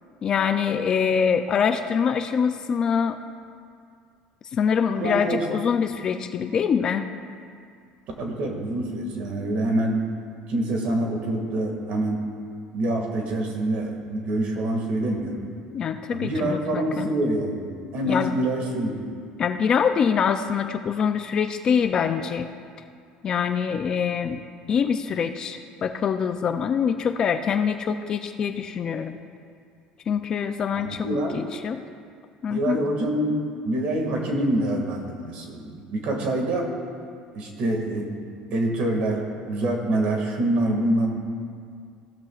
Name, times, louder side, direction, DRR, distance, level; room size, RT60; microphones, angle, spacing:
voice 1, 0.2-3.2 4.5-7.0 15.7-17.1 18.1-18.3 19.4-22.5 23.2-24.4 24.7-29.2 30.1-31.8 32.4-32.8, left 7 dB, 25° left, 7 dB, 0.4 m, -24 dB
voice 2, 5.0-5.4 8.2-10.0 10.5-12.3 12.7-15.4 16.1-18.9 30.7-31.4 32.5-33.4 33.6-36.7 37.3-38.1 38.5-41.1, right 1 dB, 50° right, 1 dB, 2.0 m, -26 dB
16.5 x 13.0 x 2.4 m, 2.3 s
cardioid pair, 180°, 3 cm